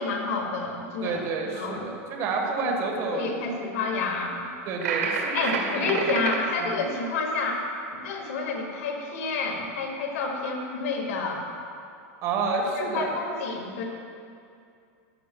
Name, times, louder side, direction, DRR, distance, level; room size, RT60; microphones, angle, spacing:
voice 1, 0.0-1.2 1.5-1.9 2.6-2.8 3.1-4.5 5.3-7.6 7.9-11.5 12.8-13.8, left 4 dB, 70° left, 0 dB, 1.9 m, -29 dB
voice 2, 1.0-3.4 4.7-5.3 5.6-6.0 12.2-13.2, right 4 dB, 40° right, 1 dB, 1.4 m, -29 dB
sound 1, 4.8-6.4, right 5 dB, 85° right, 1.9 m, -28 dB
14.5 x 10.5 x 2.3 m, 2.4 s
supercardioid pair, 150°, 8 cm